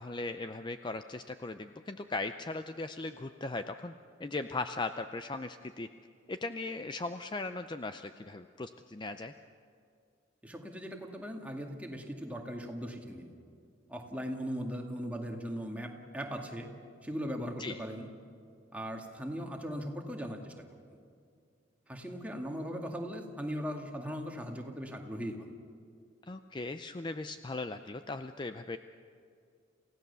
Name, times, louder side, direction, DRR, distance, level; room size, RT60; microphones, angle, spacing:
voice 1, 0.0-3.9 4.2-5.9 6.3-9.3 17.6-17.8 26.3-28.8, left 3 dB, 25° left, 9 dB, 0.5 m, -38 dB
voice 2, 10.4-13.3 13.9-16.7 17.0-18.1 18.7-20.6 21.9-25.5, equal, 5° right, 1 dB, 2.1 m, -39 dB
28.5 x 16.0 x 6.9 m, 2.3 s
head